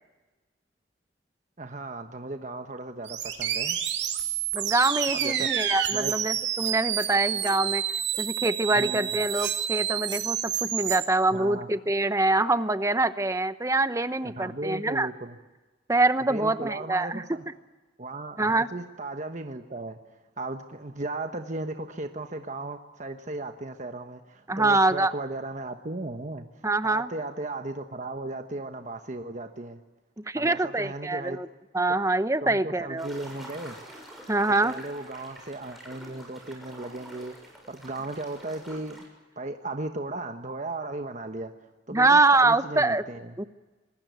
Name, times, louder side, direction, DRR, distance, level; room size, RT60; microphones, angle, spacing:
voice 1, 1.6-3.8 5.1-5.5 5.9-6.1 8.7-9.1 11.3-11.7 14.2-15.4 16.2-17.4 18.0-20.0 20.4-29.8 30.3-31.4 32.4-33.8 34.6-37.3 37.7-39.0 39.4-41.5 41.9-43.4, right 2 dB, 40° right, 6 dB, 1.2 m, -36 dB
sound 1, 3.1-11.0, right 10 dB, 70° right, 3.0 m, -29 dB
voice 2, 4.5-7.8 8.2-15.1 15.9-17.2 18.4-18.7 24.5-25.1 26.6-27.1 30.3-31.5 31.7-33.1 34.3-34.8 41.9-43.0 43.4-43.5, right 2 dB, 15° right, 12 dB, 0.9 m, -24 dB
sound 2, 33.0-39.1, equal, ahead, 7.3 m, -47 dB
26.5 x 20.5 x 9.5 m, 1.2 s
head